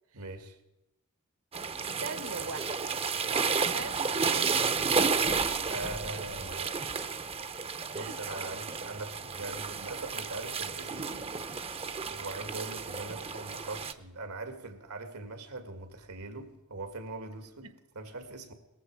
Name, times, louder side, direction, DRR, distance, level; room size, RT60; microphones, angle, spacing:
voice 1, 0.1-0.6 5.7-6.7 7.9-11.0 12.0-18.5, right 2 dB, 85° right, 2.1 m, -41 dB
sound 1, 1.5-13.9, right 5 dB, 25° right, 0.6 m, -32 dB
voice 2, 2.0-2.9 3.2-5.5 7.9-8.2 17.6-17.7, right 4 dB, 65° right, 1.1 m, -42 dB
sound 2, 2.9-4.4 4.7-4.8 5.2-7.8 8.5-8.6, left 2 dB, 40° left, 0.9 m, -48 dB
18.0 x 14.5 x 4.7 m
head